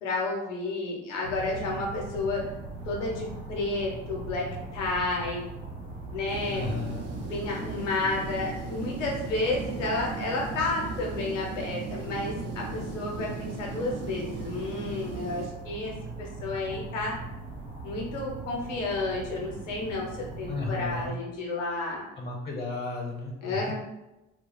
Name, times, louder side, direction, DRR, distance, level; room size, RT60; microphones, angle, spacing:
voice 1, 0.0-2.4 2.9-4.5 4.7-5.4 6.0-6.7 7.2-17.2 17.8-22.1 23.4-23.7, left 2 dB, 90° left, -2 dB, 0.6 m, -31 dB
sound 1, 1.2-21.1, right 2 dB, 80° right, 0.6 m, -40 dB
sound 2, 6.3-15.5, right 4 dB, 45° right, 0.6 m, -38 dB
voice 2, 6.5-7.1 20.5-21.2 22.2-23.7, left 3 dB, 15° left, 0 dB, 0.5 m, -34 dB
2.3 x 2.1 x 3.7 m, 0.98 s
hypercardioid pair, 45°, 36 cm